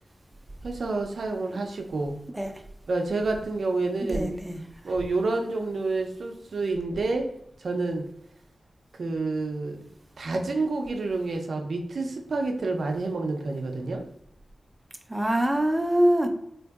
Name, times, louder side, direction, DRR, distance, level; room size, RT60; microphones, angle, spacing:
voice 1, 0.6-2.2 2.9-4.4 4.8-7.3 7.6-8.1 9.0-9.8 10.2-14.0, right 3 dB, 70° right, 3 dB, 0.5 m, -28 dB
voice 2, 4.0-4.6 15.1-16.3, right 1 dB, 10° right, 5 dB, 0.4 m, -24 dB
3.7 x 2.6 x 2.3 m, 0.76 s
wide cardioid pair, 135°, 0 cm